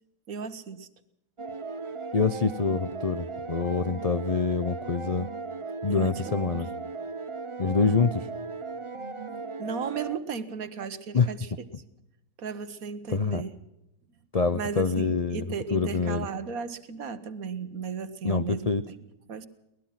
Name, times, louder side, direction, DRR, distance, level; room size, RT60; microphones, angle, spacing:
voice 1, 0.3-0.9 5.9-6.5 9.3-11.5 12.4-13.6 14.5-19.0 19.3-19.5, right 6 dB, 55° right, 12 dB, 1.5 m, -35 dB
sound 1, 1.4-10.2, right 4 dB, 30° right, 0.6 m, -37 dB
voice 2, 2.1-5.3 5.8-6.7 7.6-8.3 11.1-11.3 13.1-13.4 14.3-15.4 15.7-16.3 18.2-18.8, left 4 dB, 70° left, 11 dB, 0.3 m, -25 dB
23.5 x 19.0 x 5.8 m, 0.86 s
omnidirectional pair, 1.9 m